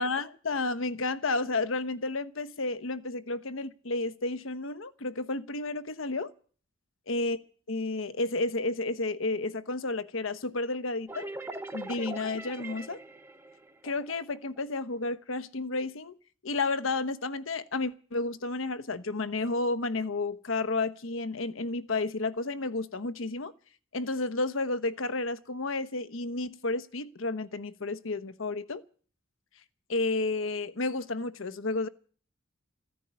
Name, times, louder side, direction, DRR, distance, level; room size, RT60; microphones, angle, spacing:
voice 1, 0.0-6.3 7.1-7.4 7.7-11.3 11.7-13.0 13.8-16.1 16.4-23.5 23.9-28.8 29.9-31.9, left 3 dB, 80° left, 1.1 m, -31 dB
sound 1, 11.1-14.6, right 2 dB, 15° right, 1.0 m, -41 dB
15.0 x 10.0 x 9.5 m
head